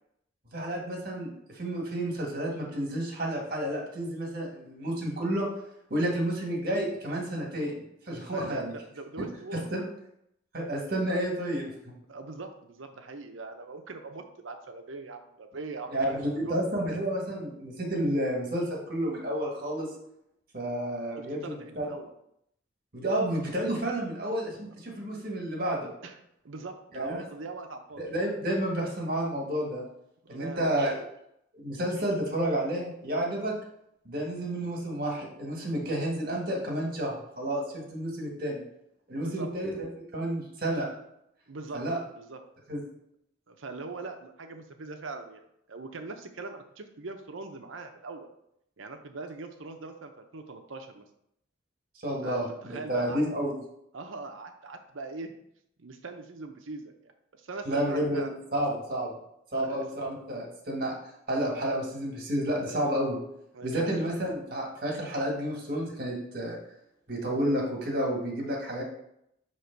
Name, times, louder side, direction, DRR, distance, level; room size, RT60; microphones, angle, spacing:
voice 1, 0.5-5.5 5.9-8.7 9.7-9.8 10.5-11.7 15.9-19.9 20.5-21.9 22.9-25.9 26.9-27.2 28.0-29.8 30.3-31.0 31.5-33.5 34.0-38.6 39.1-40.9 41.7-42.0 42.7-42.8 51.9-53.6 57.6-59.2 59.5-60.9 61.3-63.2 63.6-66.6 67.1-68.8, right 1 dB, 50° right, -1 dB, 1.6 m, -30 dB
voice 2, 8.3-9.9 12.1-16.6 21.2-22.1 26.0-26.2 26.4-28.1 30.3-30.9 39.2-39.5 41.5-42.4 43.5-48.3 48.8-51.0 52.2-53.2 53.9-55.3 55.8-57.1 57.4-58.4 59.5-59.9 63.5-64.0, right 3 dB, 85° right, 6 dB, 0.7 m, -41 dB
6.6 x 3.1 x 4.5 m, 0.76 s
head